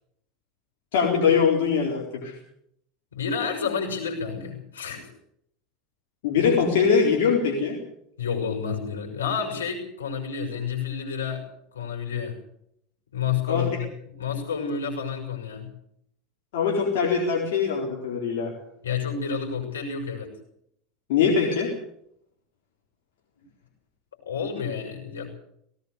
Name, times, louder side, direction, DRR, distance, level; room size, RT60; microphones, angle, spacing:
voice 1, 0.9-2.3 6.2-7.8 13.5-13.8 16.5-18.5 21.1-21.7, left 6 dB, 70° left, -1 dB, 4.2 m, -22 dB
voice 2, 3.1-5.1 8.2-11.5 11.7-12.4 13.1-15.7 18.8-20.3 24.2-25.3, left 6 dB, 90° left, 2 dB, 6.5 m, -30 dB
18.5 x 18.0 x 8.2 m, 0.72 s
hypercardioid pair, 80°, 0 cm